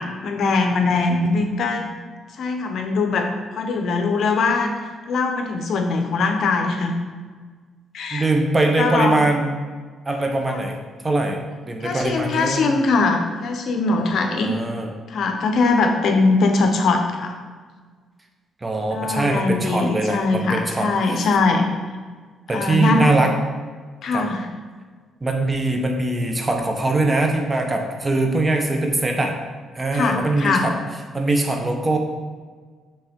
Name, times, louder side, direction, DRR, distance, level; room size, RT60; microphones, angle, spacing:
voice 1, 0.0-1.8 2.4-4.7 5.1-6.9 7.9-8.3 8.8-9.2 10.5-10.6 11.8-14.5 15.1-17.4 18.9-21.7 22.5-23.1 24.0-24.5 29.9-30.7, left 3 dB, 65° left, 4 dB, 0.8 m, -21 dB
voice 2, 8.1-9.6 10.1-10.8 11.0-12.6 14.0-14.9 18.6-21.3 22.5-23.3 24.1-24.3 25.2-29.4 29.7-30.7 31.1-32.0, right 2 dB, 25° right, 3 dB, 0.9 m, -22 dB
5.6 x 3.5 x 5.2 m, 1.5 s
cardioid pair, 90°, 0 cm